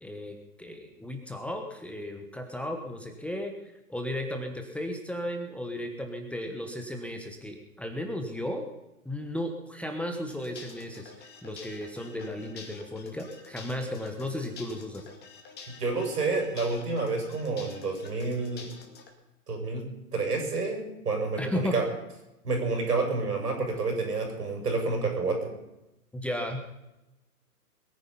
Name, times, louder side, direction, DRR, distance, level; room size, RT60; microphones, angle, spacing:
voice 1, 0.0-3.5 3.9-8.7 9.0-15.1 21.4-21.8 26.1-26.6, left 1 dB, 5° left, 4 dB, 1.2 m, -35 dB
sound 1, 10.3-19.1, left 5 dB, 20° left, 2.4 m, -49 dB
voice 2, 15.8-18.7 19.5-19.8 20.1-21.8 22.4-25.5, right 3 dB, 80° right, 3 dB, 6.4 m, -29 dB
21.5 x 10.0 x 5.6 m, 0.92 s
hypercardioid pair, 130°, 45 cm